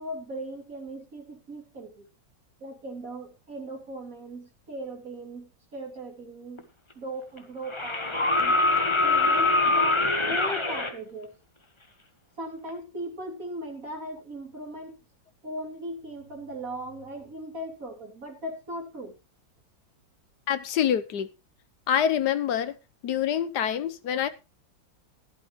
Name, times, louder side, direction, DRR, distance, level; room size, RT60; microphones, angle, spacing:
voice 1, 0.0-2.1 2.6-6.7 6.9-8.6 9.0-11.3 12.4-15.0 15.4-19.2, right 1 dB, 45° right, 3.4 m, -38 dB
sound 1, 6.6-6.7 7.7-10.9 12.7-12.8, left 2 dB, 20° left, 1.1 m, -23 dB
voice 2, 20.5-21.3 21.9-22.7 23.0-24.3, left 9 dB, 60° left, 1.3 m, -26 dB
15.5 x 12.0 x 3.1 m
omnidirectional pair, 2.1 m